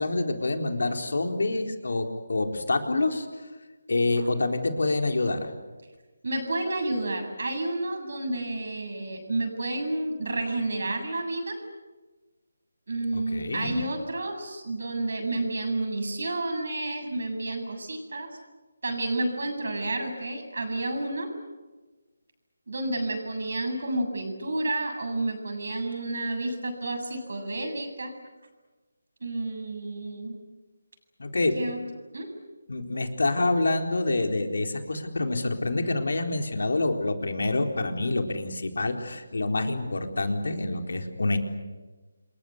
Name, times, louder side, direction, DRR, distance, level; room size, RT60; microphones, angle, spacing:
voice 1, 0.0-3.3 3.9-5.5 13.1-13.8 31.2-31.5 32.7-41.4, left 2 dB, 70° left, 4 dB, 4.1 m, -27 dB
voice 2, 6.2-11.6 12.9-18.3 18.8-21.3 22.7-28.1 29.2-30.4 31.5-31.8 32.1-32.3, right 2 dB, 65° right, 6 dB, 7.6 m, -30 dB
28.0 x 22.5 x 8.3 m, 1.2 s
figure-of-eight pair, 155°, 0 cm